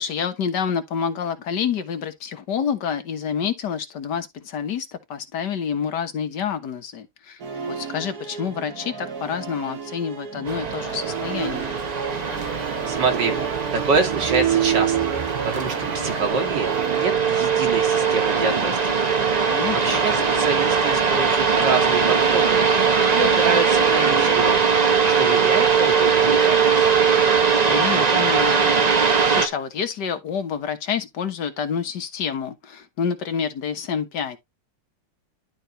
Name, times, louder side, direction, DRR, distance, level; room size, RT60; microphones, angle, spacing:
voice 1, 0.0-7.4 7.7-11.8 19.5-20.0 27.6-28.8 29.3-34.4, left 7 dB, 70° left, 1.8 m, -28 dB
Musical instrument, 7.4-25.0, right 7 dB, 60° right, 2.0 m, -31 dB
sound 1, 10.5-29.5, right 6 dB, 30° right, 0.9 m, -20 dB
voice 2, 12.5-13.4 13.7-15.0 15.4-24.6 25.1-26.9, right 4 dB, 75° right, 2.8 m, -27 dB
11.5 x 4.3 x 3.2 m
omnidirectional pair, 1.9 m